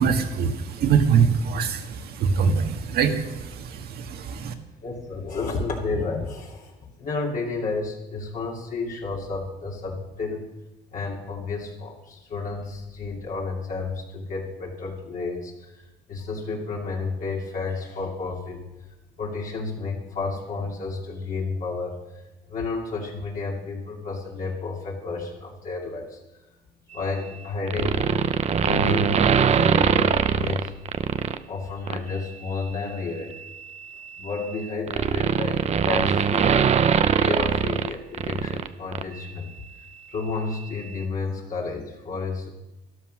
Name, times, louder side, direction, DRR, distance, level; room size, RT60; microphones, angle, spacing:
voice 1, 0.0-4.5, right 6 dB, 65° right, 6 dB, 1.7 m, -23 dB
voice 2, 4.8-10.4 10.9-18.9 19.2-26.2 26.9-28.3 28.6-30.7 31.5-33.3 34.2-39.5 40.1-42.5, left 4 dB, 50° left, -2 dB, 2.7 m, -31 dB
sound 1, 27.7-31.4 31.9-32.1 33.3-38.7 38.9-39.0, right 7 dB, 40° right, 0.7 m, -22 dB
12.5 x 11.5 x 6.4 m, 1.0 s
cardioid pair, 110°, 17 cm